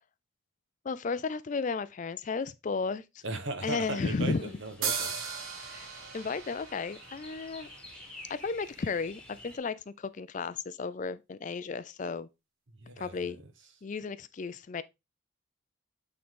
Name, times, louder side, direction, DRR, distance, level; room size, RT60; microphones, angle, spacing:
voice 1, 0.8-3.2 3.6-4.5 5.6-5.9 6.1-7.7 8.3-12.3 13.0-13.4 13.8-14.8, left 4 dB, 35° left, 0.4 m, -34 dB
voice 2, 3.2-5.2 12.8-13.4, right 2 dB, 65° right, 1.2 m, -37 dB
sound 1, 3.7-9.6, left 1 dB, 5° left, 1.5 m, -51 dB
sound 2, 4.8-8.4, right 6 dB, 85° right, 1.3 m, -37 dB
8.5 x 3.8 x 3.7 m
head